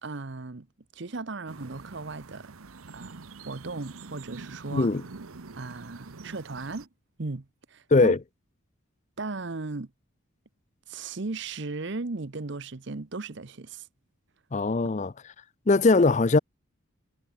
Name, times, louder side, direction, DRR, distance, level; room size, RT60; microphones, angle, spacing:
voice 1, 0.0-0.7 0.9-2.5 2.9-4.9 5.5-6.9 7.2-8.1 9.2-9.9 10.9-13.9, right 3 dB, 55° right, 0.9 m, -36 dB
sound 1, 1.5-6.9, right 3 dB, 85° right, 1.0 m, -45 dB
voice 2, 14.5-15.1 15.7-16.4, left 3 dB, 35° left, 0.5 m, -20 dB
head